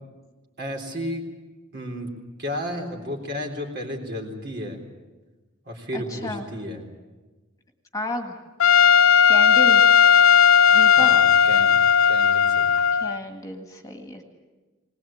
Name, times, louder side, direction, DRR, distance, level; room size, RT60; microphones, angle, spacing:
voice 1, 0.6-1.3 1.7-2.1 2.4-4.8 5.7-6.8 11.0-12.9, equal, 55° right, 2 dB, 3.9 m, -33 dB
voice 2, 5.9-6.5 7.9-8.4 9.3-9.8 10.7-11.1 12.9-14.2, left 2 dB, 15° left, 4 dB, 1.8 m, -32 dB
Trumpet, 8.6-13.2, left 7 dB, 80° left, 0.6 m, -16 dB
21.0 x 19.5 x 8.8 m, 1.2 s
head